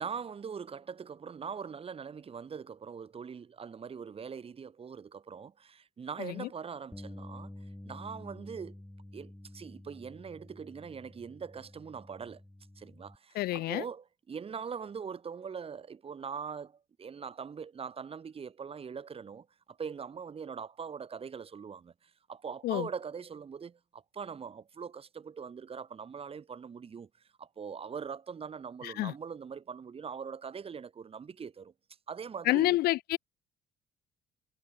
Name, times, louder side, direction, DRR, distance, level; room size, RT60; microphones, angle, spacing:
voice 1, 0.0-7.5 7.8-8.7 9.1-12.4 12.8-27.1 27.4-31.7 32.1-32.8, right 6 dB, 35° right, 2.4 m, -42 dB
Bass guitar, 6.9-13.2, left 1 dB, 5° left, 4.0 m, -49 dB
voice 2, 13.4-13.8 22.6-22.9 28.8-29.1 32.5-33.2, left 17 dB, 65° left, 0.4 m, -28 dB
cardioid pair, 110°, 17 cm